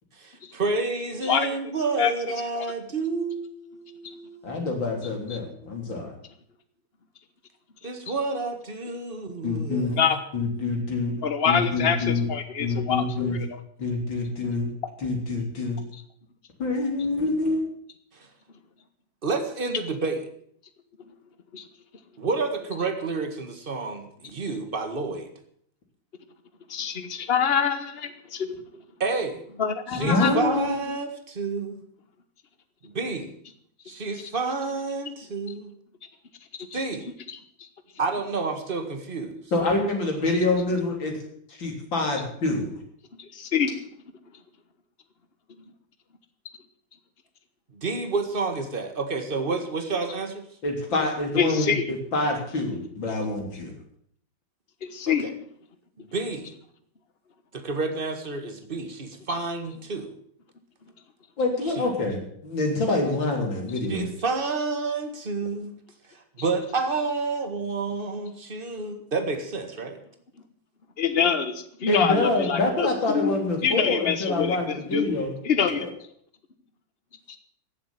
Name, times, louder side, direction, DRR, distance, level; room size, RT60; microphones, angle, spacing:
voice 1, 0.2-4.8 5.1-5.9 7.8-10.0 19.2-20.2 22.2-25.3 29.0-29.4 29.9-31.8 32.8-33.3 33.9-35.8 36.7-37.1 38.0-39.4 47.7-50.5 55.1-55.3 56.0-56.5 57.5-60.1 61.8-61.9 63.9-65.7 66.4-70.0, right 4 dB, 30° right, 7 dB, 1.8 m, -30 dB
voice 2, 4.4-6.2 9.4-10.0 10.3-11.1 11.5-12.3 12.6-13.4 13.8-14.7 15.0-15.8 16.6-17.6 30.0-30.9 39.5-41.2 41.5-42.8 50.6-53.7 61.4-64.1 71.9-75.3, left 2 dB, 70° left, 1 dB, 4.2 m, -26 dB
voice 3, 11.2-13.5 21.5-21.6 26.7-28.6 29.6-30.4 36.5-36.8 37.3-37.4 43.2-43.8 51.4-51.9 54.8-55.3 71.0-73.4 73.6-75.2 75.4-75.9, left 7 dB, 35° left, 10 dB, 1.3 m, -25 dB
16.0 x 7.7 x 9.1 m, 0.65 s
omnidirectional pair, 2.1 m